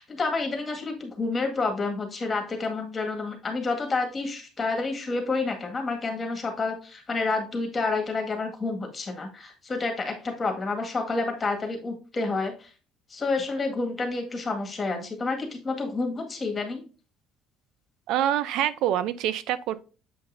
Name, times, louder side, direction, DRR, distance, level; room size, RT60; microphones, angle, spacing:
voice 1, 0.0-12.7 13.1-16.8, left 3 dB, 25° left, 1.9 m, -29 dB
voice 2, 18.1-19.8, right 11 dB, 70° right, 0.5 m, -26 dB
7.6 x 5.4 x 2.6 m
cardioid pair, 125°, 0 cm